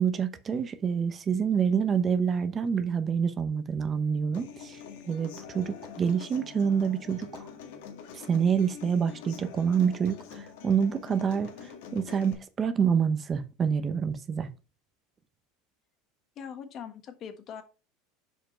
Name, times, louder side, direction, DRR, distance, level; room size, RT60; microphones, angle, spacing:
voice 1, 0.0-4.8 5.1-7.4 8.3-11.5 11.9-14.5, right 7 dB, 25° right, 0.8 m, -27 dB
Human voice / Acoustic guitar, 4.3-12.3, left 7 dB, 80° left, 1.7 m, -45 dB
voice 2, 16.3-17.6, left 7 dB, 40° left, 1.4 m, -41 dB
6.9 x 5.2 x 4.4 m
supercardioid pair, 130°, 0 cm